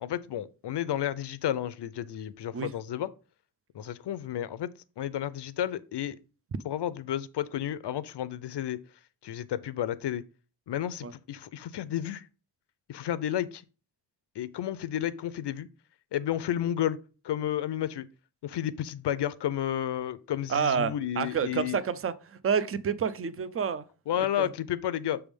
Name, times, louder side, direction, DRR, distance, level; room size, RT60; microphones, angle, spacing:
voice 1, 0.0-3.1 3.7-4.7 5.0-6.2 6.6-8.8 9.2-10.2 10.7-12.2 12.9-13.6 14.4-15.7 16.1-17.0 17.2-18.1 18.4-21.8 24.1-25.2, left 11 dB, 70° left, 0.6 m, -31 dB
voice 2, 20.5-23.9 24.2-24.5, right 7 dB, 35° right, 0.5 m, -29 dB
7.0 x 3.5 x 5.1 m
wide cardioid pair, 110°, 43 cm